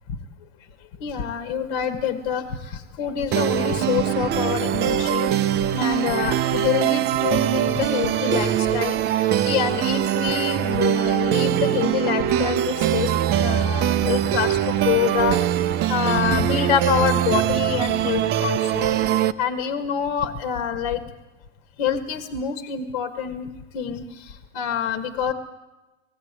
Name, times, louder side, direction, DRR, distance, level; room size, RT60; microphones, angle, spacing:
voice 1, 1.0-5.3 5.7-13.1 13.4-15.4 15.9-18.9 19.4-21.0 21.8-23.5 23.7-25.3, left 8 dB, 50° left, 10 dB, 1.6 m, -26 dB
sound 1, 3.3-19.3, right 11 dB, 25° right, 0.6 m, -22 dB
19.5 x 15.0 x 9.6 m, 1.1 s
hypercardioid pair, 130°, 38 cm